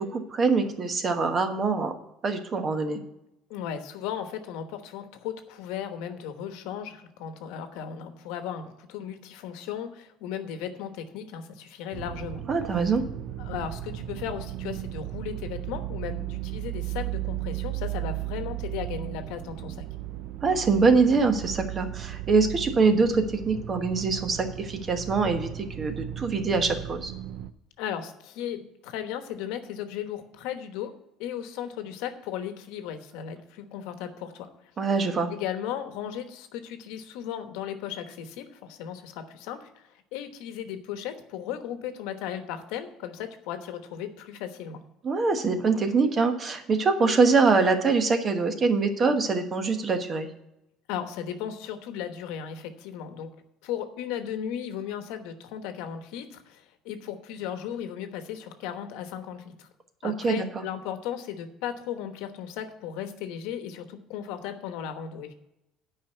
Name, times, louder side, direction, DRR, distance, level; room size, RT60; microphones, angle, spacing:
voice 1, 0.0-1.9 2.2-3.0 12.5-13.0 20.4-27.1 34.8-35.3 45.0-50.3 60.0-60.6, right 4 dB, 30° right, 7 dB, 1.2 m, -24 dB
voice 2, 3.5-12.4 13.4-19.9 27.8-30.9 31.2-34.5 35.3-44.8 50.9-53.3 53.6-59.7 60.0-65.3, left 9 dB, 85° left, 8 dB, 1.1 m, -36 dB
sound 1, 11.9-27.5, right 14 dB, 65° right, 0.5 m, -35 dB
8.9 x 5.3 x 7.9 m, 0.86 s
cardioid pair, 125°, 0 cm